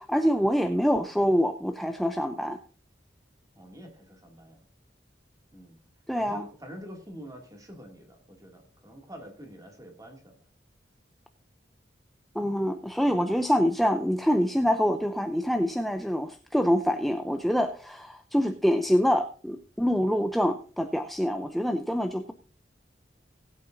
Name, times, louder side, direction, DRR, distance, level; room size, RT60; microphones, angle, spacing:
voice 1, 0.0-2.6 6.1-6.4 12.3-22.3, equal, ahead, 7 dB, 0.4 m, -25 dB
voice 2, 3.5-4.7 5.5-5.8 6.1-10.5, equal, 20° right, 2 dB, 2.3 m, -46 dB
19.5 x 8.5 x 2.6 m, 0.42 s
head